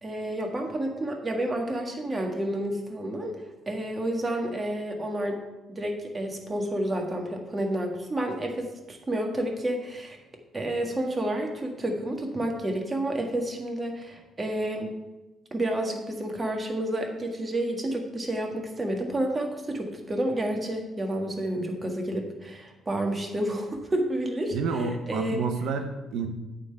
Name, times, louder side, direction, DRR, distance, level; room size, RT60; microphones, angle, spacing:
voice 1, 0.0-3.4 3.7-5.4 5.7-10.2 10.5-14.9 15.5-25.5, right 1 dB, 30° right, 2 dB, 1.7 m, -30 dB
voice 2, 24.5-26.3, right 4 dB, 70° right, 6 dB, 0.9 m, -29 dB
8.8 x 3.9 x 7.0 m, 1.0 s
hypercardioid pair, 45°, 0 cm